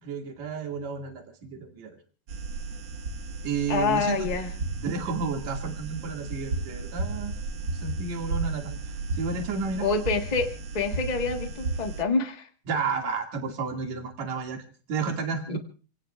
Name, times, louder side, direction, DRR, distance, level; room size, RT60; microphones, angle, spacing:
voice 1, 0.0-2.0 3.4-4.3 4.8-7.3 7.7-9.9 12.7-14.6 14.9-15.6, right 5 dB, 65° right, 2 dB, 3.5 m, -31 dB
sound 1, 2.3-12.0, right 3 dB, 50° right, 1.6 m, -34 dB
voice 2, 3.7-4.5 9.8-10.5 10.7-12.5 15.5-15.6, left 4 dB, 25° left, 4 dB, 0.8 m, -27 dB
28.5 x 18.5 x 2.5 m, 0.37 s
omnidirectional pair, 3.5 m